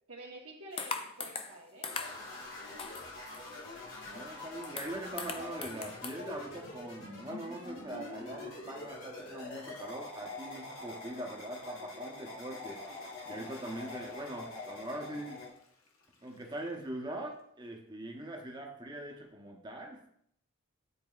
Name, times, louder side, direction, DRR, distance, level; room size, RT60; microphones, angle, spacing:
voice 1, 0.1-2.5, right 2 dB, 80° right, -4 dB, 1.2 m, -50 dB
sound 1, 0.8-1.6 1.8-2.4 2.8-3.7 4.1-4.2 4.4-6.1, left 5 dB, 25° left, 0.4 m, -40 dB
sound 2, 1.9-15.5, left 2 dB, 70° left, 1.9 m, -45 dB
voice 2, 4.0-13.0 13.3-15.5 16.2-20.1, right 1 dB, 20° right, 1 dB, 0.8 m, -42 dB
Water / Toilet flush, 12.6-17.6 18.1-18.2, left 2 dB, 90° left, 1.0 m, -61 dB
9.6 x 4.2 x 2.4 m, 0.69 s
head